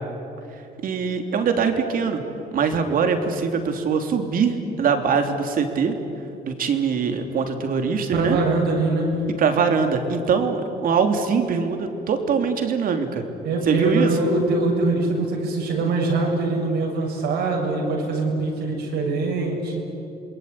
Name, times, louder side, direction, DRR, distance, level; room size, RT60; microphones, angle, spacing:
voice 1, 0.8-2.2 2.5-5.9 6.4-8.4 9.4-13.2 13.7-14.1, right 5 dB, 55° right, 6 dB, 3.2 m, -22 dB
voice 2, 8.1-9.1 13.4-19.8, right 3 dB, 80° right, -1 dB, 7.3 m, -23 dB
27.5 x 21.0 x 9.8 m, 2.8 s
cardioid pair, 110°, 17 cm